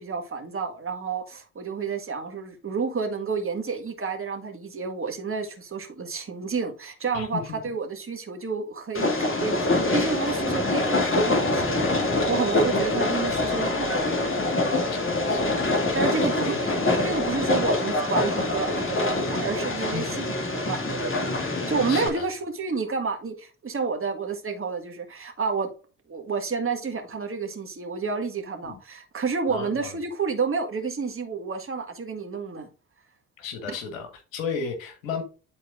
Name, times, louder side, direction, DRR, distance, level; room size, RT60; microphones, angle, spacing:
voice 1, 0.0-11.8 12.1-14.4 15.9-16.8 17.0-21.3 21.7-25.7 26.1-32.7 33.7-33.8, right 5 dB, 35° right, 1.8 m, -30 dB
voice 2, 7.1-7.6 12.3-12.4 14.9-15.8 16.1-16.6 19.9-20.2 21.9-22.3 28.6-28.8 29.5-29.9 33.4-35.2, left 5 dB, 85° left, 1.6 m, -34 dB
Train, 8.9-22.1, left 2 dB, 30° left, 2.4 m, -25 dB
11.0 x 4.2 x 2.5 m
hypercardioid pair, 50°, 39 cm